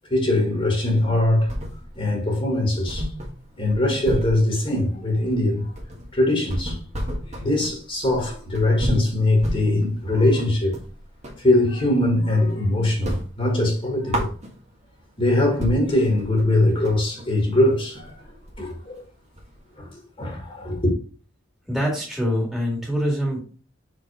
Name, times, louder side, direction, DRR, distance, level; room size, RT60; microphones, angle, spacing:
voice 1, 0.1-1.5 2.0-3.1 3.6-5.7 6.1-6.8 7.4-10.8 11.4-14.3 15.2-18.2 18.6-19.0 19.8-20.9, left 1 dB, 30° left, 1.9 m, -21 dB
sound 1, 0.9-2.1 2.4-2.5 2.9-11.5 11.8-12.6 12.9-14.9 15.3-15.4 15.6-19.7, equal, 35° right, 1.7 m, -32 dB
voice 2, 21.7-23.4, equal, 5° right, 2.0 m, -24 dB
5.8 x 5.1 x 4.3 m
head